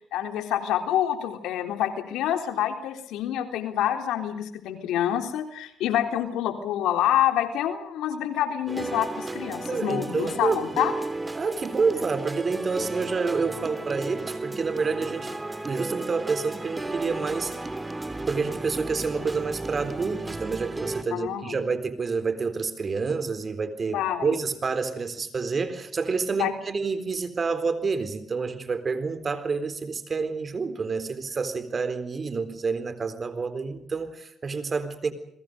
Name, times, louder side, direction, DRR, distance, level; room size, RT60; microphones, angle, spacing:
voice 1, 0.1-10.9 21.1-21.5 23.9-24.3 26.4-26.5, left 11 dB, 90° left, 6 dB, 3.9 m, -27 dB
sound 1, 8.7-21.0, right 2 dB, 15° right, 3.3 m, -34 dB
voice 2, 9.7-10.6 11.4-15.3 15.6-17.5 18.2-35.1, right 4 dB, 40° right, 11 dB, 3.9 m, -28 dB
30.0 x 22.5 x 5.2 m, 0.71 s
cardioid pair, 90°, 0 cm